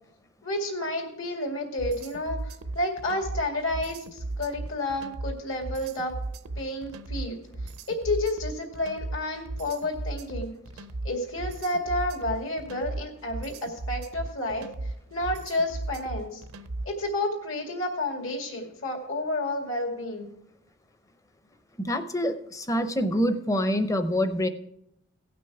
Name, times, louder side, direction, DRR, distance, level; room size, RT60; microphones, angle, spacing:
voice 1, 0.4-6.1 6.6-7.4 7.9-16.4 16.8-20.3, left 1 dB, 70° left, 2 dB, 2.2 m, -31 dB
sound 1, 1.8-17.0, right 2 dB, 85° right, 0.6 m, -36 dB
voice 2, 21.8-24.5, equal, 15° left, 10 dB, 0.6 m, -26 dB
17.0 x 6.0 x 4.7 m, 0.77 s
head